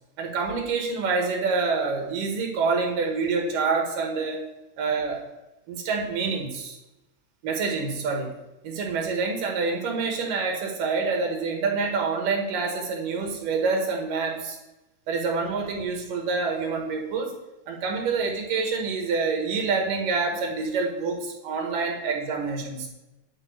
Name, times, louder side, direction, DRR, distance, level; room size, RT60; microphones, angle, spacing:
voice 1, 0.2-4.4 4.8-5.3 5.7-6.8 7.4-8.3 8.6-14.6 15.1-17.3 17.7-22.9, right 4 dB, 85° right, 1 dB, 3.4 m, -27 dB
10.5 x 4.8 x 7.9 m, 0.98 s
omnidirectional pair, 3.7 m